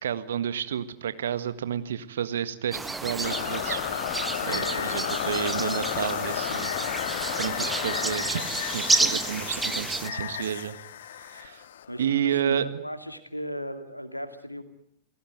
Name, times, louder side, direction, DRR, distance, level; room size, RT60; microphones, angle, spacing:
voice 1, 0.0-4.1 4.5-6.7 7.4-10.8 11.2-11.6 12.0-12.6, right 9 dB, 65° right, 12 dB, 1.7 m, -30 dB
sound 1, 2.7-10.1, right 3 dB, 10° right, 1.3 m, -30 dB
sound 2, 3.2-12.3, left 10 dB, 60° left, 1.0 m, -32 dB
voice 2, 4.5-4.9 11.9-14.6, equal, 90° left, 9 dB, 2.3 m, -36 dB
28.5 x 17.5 x 9.4 m, 0.69 s
figure-of-eight pair, 90°, 0 cm